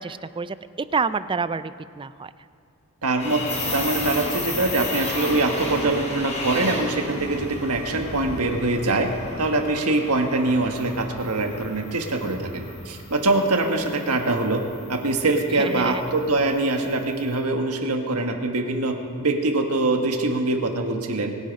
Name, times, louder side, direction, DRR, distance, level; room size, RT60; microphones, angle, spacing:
voice 1, 0.0-2.3 15.5-16.0, right 5 dB, 20° right, 14 dB, 0.4 m, -28 dB
voice 2, 3.0-14.6 14.9-18.9 19.2-21.3, right 2 dB, 80° right, 4 dB, 1.5 m, -23 dB
sound 1, 3.2-17.2, left 2 dB, 30° left, 3.5 m, -34 dB
25.0 x 8.6 x 5.3 m, 2.2 s
head